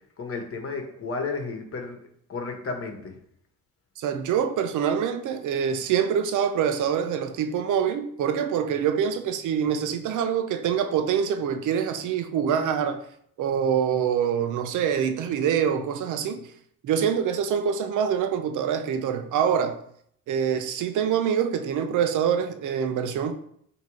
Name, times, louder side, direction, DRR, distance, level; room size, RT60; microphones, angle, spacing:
voice 1, 0.2-2.0 2.3-3.2, left 4 dB, 45° left, 1.5 m, -32 dB
voice 2, 4.0-13.0 13.4-16.5 16.8-19.8 20.3-23.3, right 8 dB, 80° right, 0.8 m, -25 dB
8.1 x 3.0 x 4.9 m
cardioid pair, 90°, 30 cm